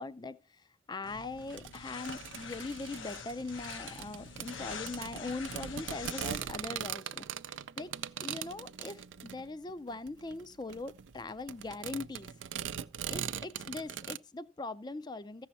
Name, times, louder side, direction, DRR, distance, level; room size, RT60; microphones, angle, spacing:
voice 1, 0.0-7.9 8.2-12.3 13.1-15.5, left 3 dB, 20° left, 0.5 m, -41 dB
sound 1, 1.0-6.6, left 5 dB, 90° left, 1.1 m, -45 dB
sound 2, 1.5-14.2, right 9 dB, 75° right, 0.4 m, -41 dB
14.5 x 6.3 x 4.2 m
head